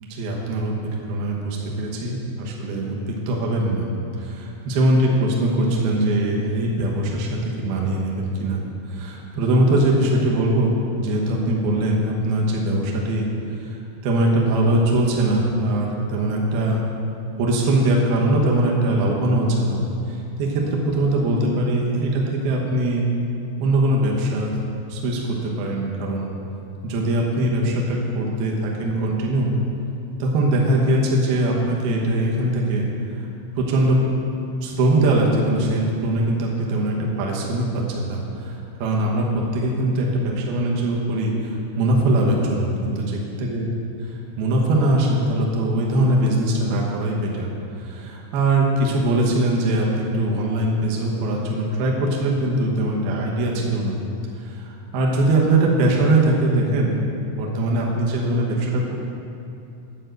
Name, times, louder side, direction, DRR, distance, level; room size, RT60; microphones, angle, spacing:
voice 1, 0.1-3.9 4.2-8.6 8.9-13.3 13.6-16.8 17.4-19.8 20.1-23.1 23.6-24.6 24.9-26.3 26.8-29.5 30.2-33.1 33.6-34.0 34.6-43.7 44.4-47.5 47.8-54.0 54.4-57.0 57.3-58.9, right 1 dB, 70° right, -2 dB, 2.4 m, -21 dB
10.5 x 5.3 x 7.8 m, 2.7 s
omnidirectional pair, 5.6 m